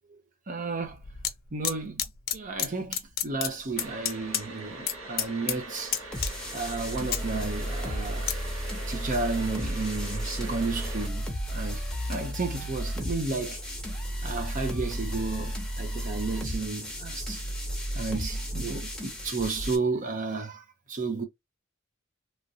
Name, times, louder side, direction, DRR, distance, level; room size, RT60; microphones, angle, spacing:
voice 1, 0.5-1.0 1.5-2.0 2.3-6.0 6.5-8.3 8.9-11.2 11.5-11.8 12.1-13.6 14.2-17.4 17.9-21.2, right 3 dB, 40° right, 0.6 m, -32 dB
sound 1, 0.8-1.3 1.6-2.7 2.9-4.4 4.7-4.9 5.2-5.6 5.9-6.6 6.9-8.3 8.9-9.0, left 10 dB, 50° left, 0.5 m, -30 dB
sound 2, 3.8-11.1, right 2 dB, 75° right, 1.4 m, -42 dB
sound 3, 6.1-19.8, equal, 5° left, 1.0 m, -33 dB
3.0 x 2.5 x 2.7 m
head